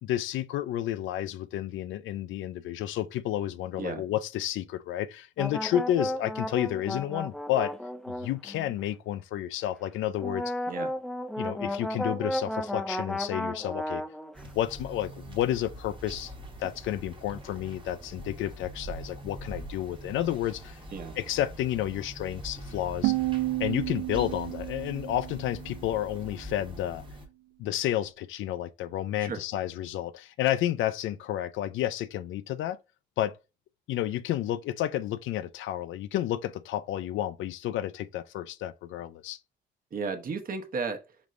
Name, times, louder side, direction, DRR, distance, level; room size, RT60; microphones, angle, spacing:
voice 1, 0.0-7.7 8.1-10.5 11.4-14.0 14.4-16.3 16.6-20.8 21.2-23.2 23.6-27.0 27.6-32.8 33.2-33.4 33.9-39.4, left 12 dB, 80° left, 0.4 m, -31 dB
sound 1, 5.4-8.8 10.2-14.4, left 1 dB, ahead, 0.3 m, -33 dB
sound 2, 14.3-27.3, right 1 dB, 25° right, 1.1 m, -43 dB
sound 3, 23.0-26.0, right 19 dB, 75° right, 0.4 m, -31 dB
voice 2, 39.9-41.0, right 5 dB, 45° right, 0.9 m, -34 dB
5.1 x 3.1 x 2.5 m
cardioid pair, 90°, 20 cm